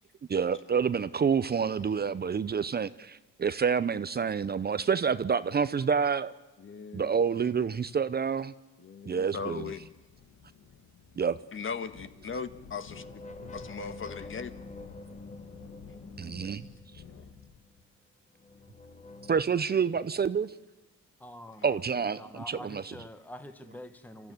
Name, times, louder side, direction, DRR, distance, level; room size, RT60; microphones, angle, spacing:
voice 1, 0.3-6.3 6.9-8.5 9.1-9.6 11.2-11.4 16.2-16.7 19.3-20.5 21.6-22.9, right 6 dB, 35° right, 15 dB, 0.7 m, -28 dB
voice 2, 6.6-7.1 8.8-9.9 11.5-13.0 13.5-14.5, left 5 dB, 40° left, 11 dB, 1.6 m, -38 dB
sound 1, 9.5-17.8, left 6 dB, 70° left, 2.4 m, -52 dB
sound 2, 12.9-17.8 18.4-19.4, left 2 dB, 25° left, 1.3 m, -47 dB
voice 3, 21.2-24.3, left 1 dB, 5° left, 8 dB, 1.6 m, -46 dB
29.0 x 13.5 x 9.4 m, 1.1 s
cardioid pair, 90°, 30 cm